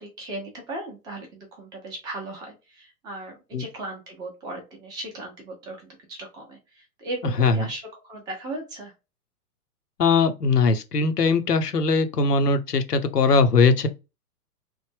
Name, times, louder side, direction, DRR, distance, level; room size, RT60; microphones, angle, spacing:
voice 1, 0.0-8.9, right 2 dB, 10° right, 0.4 m, -37 dB
voice 2, 10.0-13.9, left 4 dB, 85° left, 0.7 m, -20 dB
3.1 x 2.0 x 3.4 m
figure-of-eight pair, 110°, 46 cm